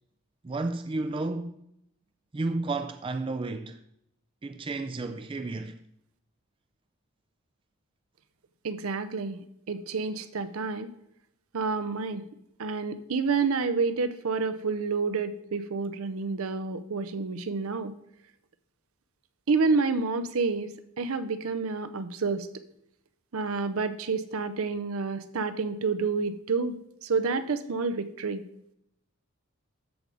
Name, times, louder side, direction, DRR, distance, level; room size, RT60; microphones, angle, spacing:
voice 1, 0.4-1.6 2.3-3.8 4.4-5.8, right 3 dB, 25° right, 0.3 m, -32 dB
voice 2, 8.6-9.4 9.7-10.9 11.5-12.2 12.6-17.9 19.5-22.5 23.3-28.4, right 4 dB, 75° right, 0.6 m, -29 dB
13.0 x 4.9 x 3.8 m
head